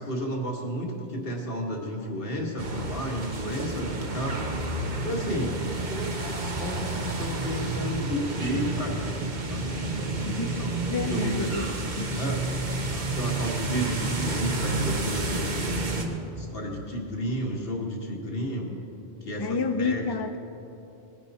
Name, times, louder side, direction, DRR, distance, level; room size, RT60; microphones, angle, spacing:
voice 1, 0.0-4.4 5.0-5.6 5.9-9.2 9.5-10.7 11.1-12.4 12.9-15.7 16.3-18.7 19.2-20.0, equal, 60° left, -1 dB, 2.0 m, -32 dB
sound 1, 2.6-16.1, right 2 dB, 45° right, 1.2 m, -30 dB
voice 2, 10.3-10.6 10.9-12.2 19.4-20.4, left 4 dB, 35° left, 8 dB, 0.4 m, -30 dB
19.5 x 10.0 x 4.2 m, 3.0 s
omnidirectional pair, 1.1 m